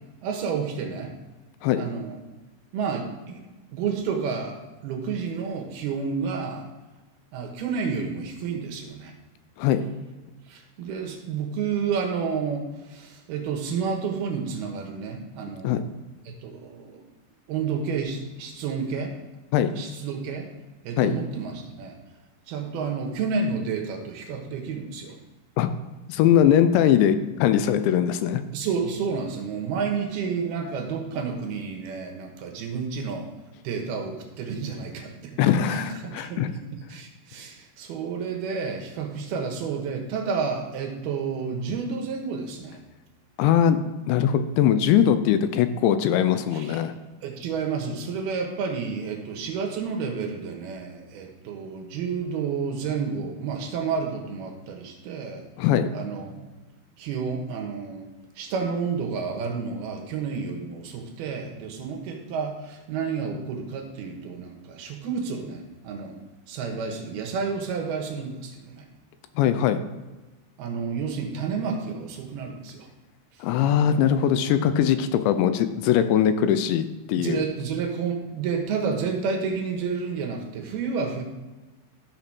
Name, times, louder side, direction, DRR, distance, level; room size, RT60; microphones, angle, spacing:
voice 1, 0.2-1.1 1.8-2.2 2.7-3.4 3.7-4.6 4.8-6.7 7.3-9.1 10.5-15.9 16.2-17.0 17.5-19.1 19.8-20.5 20.8-22.0 22.5-25.2 28.5-33.3 33.6-35.4 35.7-36.4 36.7-42.8 46.5-46.8 47.2-55.4 55.9-56.5 57.0-58.1 58.4-66.2 66.5-68.8 70.6-72.9 77.1-81.2, right 5 dB, 70° right, 3 dB, 2.7 m, -30 dB
voice 2, 26.1-28.4 35.4-36.5 43.4-43.8 44.1-47.0 55.6-55.9 69.4-69.8 73.4-77.4, left 9 dB, 80° left, 11 dB, 2.7 m, -21 dB
13.0 x 5.9 x 6.1 m, 1.2 s
omnidirectional pair, 5.6 m